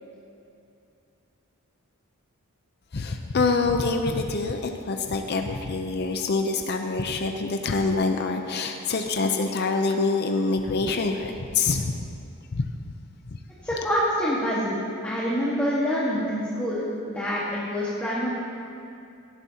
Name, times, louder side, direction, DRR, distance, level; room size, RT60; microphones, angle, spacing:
voice 1, 2.9-12.1 12.5-12.7 13.2-13.4, left 3 dB, 50° left, 4 dB, 0.6 m, -26 dB
voice 2, 13.6-14.8 15.0-18.3, equal, 5° left, -9 dB, 1.6 m, -26 dB
17.5 x 12.0 x 2.9 m, 2.6 s
head